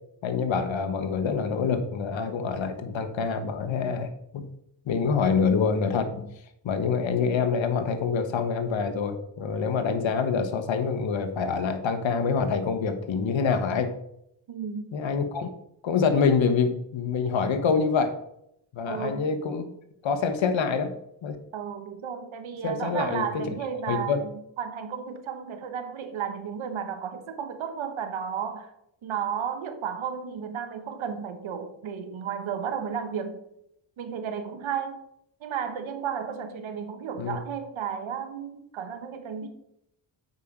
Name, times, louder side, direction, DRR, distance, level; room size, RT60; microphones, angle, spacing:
voice 1, 0.2-4.5 4.8-6.3 6.6-13.9 14.9-15.5 15.8-18.1 18.7-19.7 20.0-20.9 21.2-21.4 22.6-23.4 23.9-24.2 37.2-37.4, left 5 dB, 75° left, 1.3 m, -26 dB
voice 2, 14.5-14.9 18.9-19.2 21.5-28.7 29.0-33.4 34.0-35.0 35.4-39.5, right 7 dB, 80° right, 1.3 m, -33 dB
8.2 x 5.1 x 5.9 m
cardioid pair, 80°, 46 cm